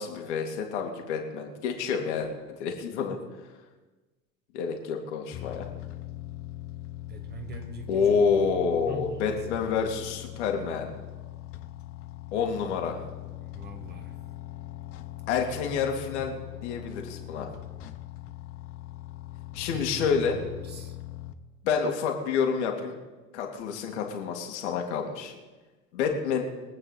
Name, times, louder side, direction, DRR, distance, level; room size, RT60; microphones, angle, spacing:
voice 1, 0.0-3.2 4.5-5.7 7.9-10.9 12.3-13.0 15.3-17.5 19.5-20.4 21.6-22.9 23.3-25.3 25.9-26.4, left 6 dB, 55° left, 2 dB, 2.6 m, -28 dB
sound 1, 5.3-21.3, left 14 dB, 35° left, 0.9 m, -41 dB
voice 2, 7.1-8.2 8.9-9.8 13.5-14.1 19.7-20.1 20.3-21.0 23.9-24.0, right 3 dB, 25° right, 3 dB, 2.1 m, -43 dB
23.5 x 8.9 x 4.2 m, 1.2 s
figure-of-eight pair, 80°, 40 cm